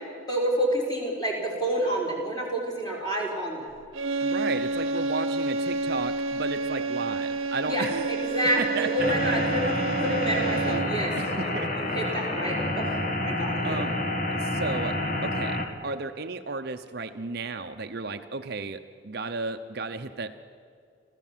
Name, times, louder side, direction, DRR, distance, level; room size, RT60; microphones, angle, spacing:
voice 1, 0.3-3.7 7.7-11.1 11.4-13.0 13.2-13.8, equal, 20° left, -2 dB, 4.6 m, -28 dB
sound 1, 3.9-11.1, right 3 dB, 85° right, 1.0 m, -29 dB
voice 2, 4.2-8.1 8.6-9.4 11.2-11.7 13.6-13.9 14.3-20.3, right 3 dB, 50° right, 8 dB, 0.8 m, -33 dB
sound 2, 9.0-15.7, left 1 dB, 40° left, 1.9 m, -29 dB
27.5 x 15.0 x 7.4 m, 2.3 s
head